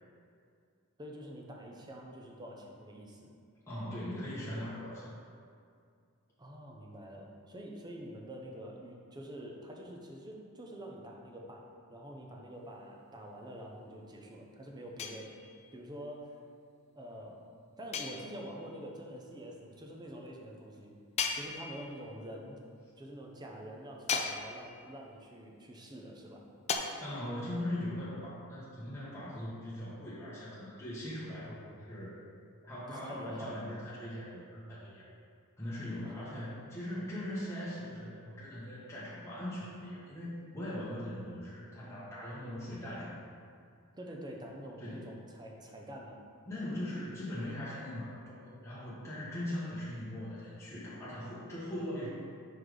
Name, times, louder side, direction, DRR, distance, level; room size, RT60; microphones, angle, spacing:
voice 1, 1.0-3.3 6.4-15.3 15.7-16.4 17.0-17.4 17.8-20.9 21.3-22.6 23.0-26.5 32.9-33.6 36.0-36.5 44.0-46.2, equal, 20° right, 0 dB, 0.6 m, -46 dB
voice 2, 3.7-5.2 27.0-31.6 31.8-32.1 32.6-35.0 35.6-43.1 44.8-45.1 46.5-52.1, left 1 dB, 10° left, -10 dB, 1.0 m, -40 dB
sound 1, 15.0-15.7 17.9-18.7 21.2-22.1 24.1-24.9 26.7-26.8, left 5 dB, 30° left, 0.4 m, -36 dB
4.8 x 4.1 x 4.9 m, 2.3 s
head